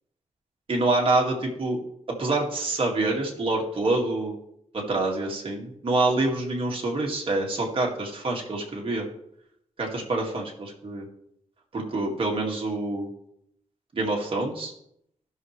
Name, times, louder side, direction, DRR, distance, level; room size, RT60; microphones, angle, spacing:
voice 1, 0.7-1.8 2.2-4.3 4.7-9.1 9.8-11.1 11.7-13.1 13.9-14.7, right 2 dB, 45° right, -1 dB, 2.0 m, -26 dB
15.0 x 6.2 x 3.2 m, 0.74 s
wide cardioid pair, 150°, 13 cm